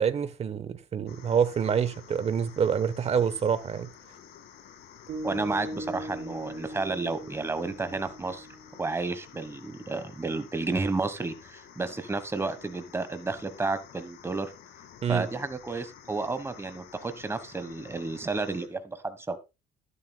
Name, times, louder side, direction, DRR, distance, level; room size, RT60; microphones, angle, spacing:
voice 1, 0.0-3.9 15.0-15.3, right 7 dB, 40° right, 1.0 m, -26 dB
sound 1, 1.1-18.7, left 9 dB, 75° left, 2.1 m, -51 dB
sound 2, 5.1-9.5, right 1 dB, 65° right, 3.8 m, -40 dB
voice 2, 5.2-8.5 8.8-14.5 15.1-19.4, right 3 dB, 15° right, 1.2 m, -32 dB
12.5 x 11.0 x 2.3 m
cardioid pair, 110°, 17 cm